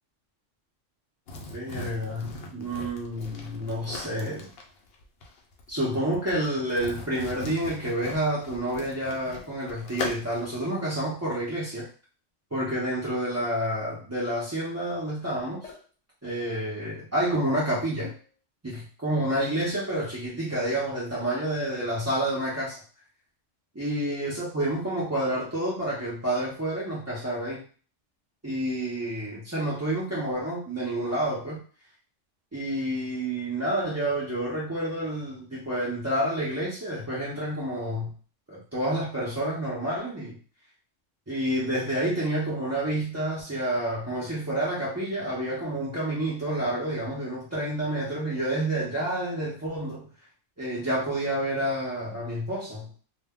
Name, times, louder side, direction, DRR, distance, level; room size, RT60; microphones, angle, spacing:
sound 1, 1.3-10.6, left 2 dB, 60° left, 0.7 m, -39 dB
voice 1, 1.5-4.5 5.7-11.9 12.5-15.7 16.2-18.1 18.6-22.8 23.7-27.6 28.4-31.6 32.5-38.1 38.5-40.4 41.3-50.1 50.6-52.9, right 1 dB, 25° right, -8 dB, 0.4 m, -29 dB
sound 2, 15.6-15.9 18.0-18.4, left 5 dB, 80° left, 1.0 m, -46 dB
2.2 x 2.1 x 3.5 m, 0.40 s
omnidirectional pair, 1.3 m